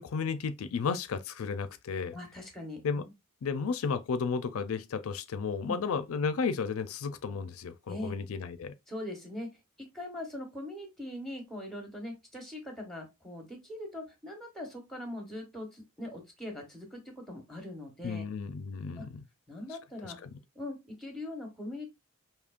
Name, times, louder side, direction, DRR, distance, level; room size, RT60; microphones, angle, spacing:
voice 1, 0.0-2.2 2.8-3.0 3.4-8.7 18.0-19.2 20.2-20.3, left 5 dB, 80° left, 0.4 m, -33 dB
voice 2, 2.1-3.0 5.6-5.8 7.9-8.1 8.9-9.5 9.8-18.2 19.0-19.1 19.5-20.2 20.5-21.9, left 1 dB, ahead, 1.1 m, -41 dB
5.1 x 2.8 x 2.4 m
head